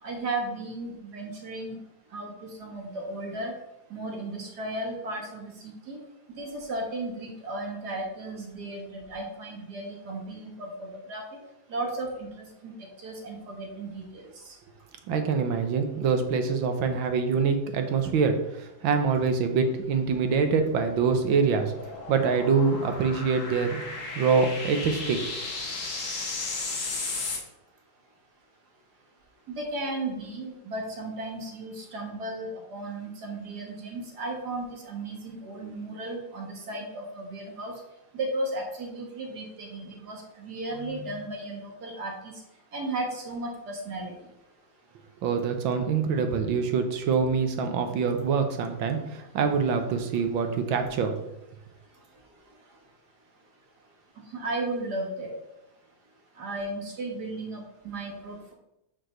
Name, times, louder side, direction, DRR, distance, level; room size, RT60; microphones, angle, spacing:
voice 1, 0.0-1.8 2.1-3.5 3.9-6.0 6.4-11.2 11.7-12.7 13.0-14.3 29.5-37.7 38.1-42.3 42.7-44.1 54.3-55.3 56.4-58.5, right 2 dB, 55° right, 1 dB, 2.1 m, -35 dB
voice 2, 15.1-21.7 22.1-23.8 24.1-25.2 45.2-51.1, right 5 dB, 80° right, 6 dB, 1.7 m, -25 dB
sound 1, 19.9-27.4, left 3 dB, 45° left, 1.6 m, -35 dB
6.5 x 4.6 x 6.3 m, 0.86 s
omnidirectional pair, 2.1 m